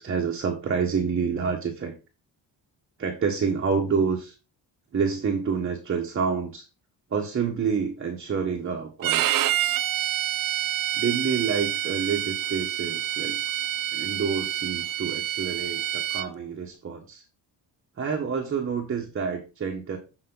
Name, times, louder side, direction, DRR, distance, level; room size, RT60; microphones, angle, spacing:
voice 1, 0.0-1.9 3.0-4.3 4.9-6.7 7.1-9.2 10.9-13.4 13.9-17.3 18.0-20.0, right 6 dB, 30° right, 1 dB, 1.3 m, -28 dB
Bowed string instrument, 9.0-16.3, right 12 dB, 50° right, 0.5 m, -27 dB
8.6 x 5.1 x 3.9 m, 0.29 s
cardioid pair, 145°, 44 cm